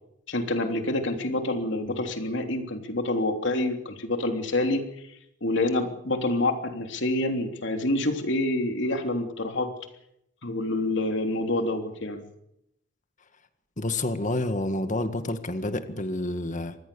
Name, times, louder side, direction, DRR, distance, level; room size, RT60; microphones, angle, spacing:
voice 1, 0.3-4.9 5.4-9.7 10.4-12.2, left 1 dB, 65° left, 5 dB, 3.4 m, -27 dB
voice 2, 13.8-16.8, left 2 dB, 40° left, 9 dB, 1.8 m, -29 dB
26.0 x 20.0 x 7.1 m, 0.79 s
head